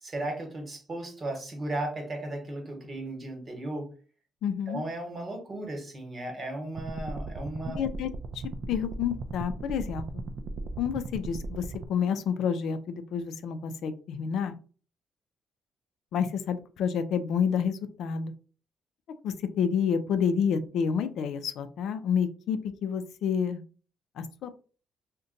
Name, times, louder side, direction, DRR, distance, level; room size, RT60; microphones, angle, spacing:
voice 1, 0.0-3.9 4.7-7.8, right 1 dB, 35° right, 4 dB, 1.1 m, -35 dB
voice 2, 4.4-4.8 7.7-8.1 8.7-10.0 10.8-14.5 16.1-18.3 19.2-23.6 24.2-24.6, left 7 dB, 80° left, 10 dB, 0.4 m, -29 dB
sound 1, 6.8-11.9, right 2 dB, 60° right, 0.4 m, -37 dB
2.6 x 2.2 x 3.8 m, 0.38 s
cardioid pair, 90°, 0 cm